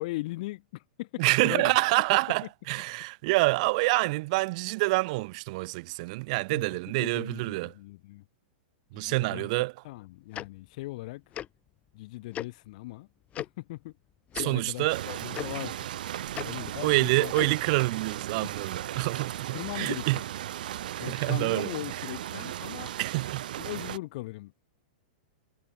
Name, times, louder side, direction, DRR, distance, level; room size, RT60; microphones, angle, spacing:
voice 1, 0.0-1.8 6.5-8.2 8.9-11.2 11.9-13.1 13.4-13.9 14.4-15.9 16.4-17.6 18.4-18.5 19.5-20.2 21.0-22.9 23.6-24.6, left 20 dB, 55° left, 7.2 m, -39 dB
voice 2, 1.2-7.7 8.9-9.7 14.4-15.0 16.8-20.2 20.9-21.7 23.0-23.4, right 24 dB, 50° right, 1.2 m, -27 dB
Tick-tock, 10.3-10.5 11.3-11.5 12.3-12.5 13.3-13.5 14.3-14.5 15.3-15.5 16.3-16.5 17.3-17.5, left 11 dB, 30° left, 2.6 m, -35 dB
sound 1, 14.9-24.0, right 12 dB, 70° right, 1.6 m, -36 dB
hypercardioid pair, 125°, 5 cm